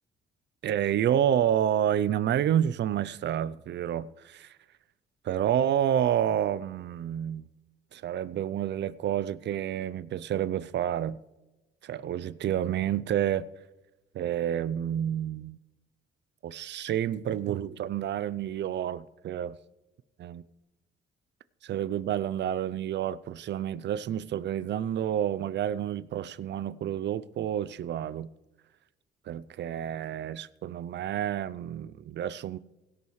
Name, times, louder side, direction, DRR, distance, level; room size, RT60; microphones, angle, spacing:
voice 1, 0.6-4.6 5.2-7.5 7.9-11.2 11.8-13.4 14.1-15.6 16.4-19.6 20.2-20.4 21.6-28.3 29.3-32.6, right 10 dB, 65° right, 0.6 m, -29 dB
17.5 x 11.0 x 3.2 m
cardioid pair, 90°, 20 cm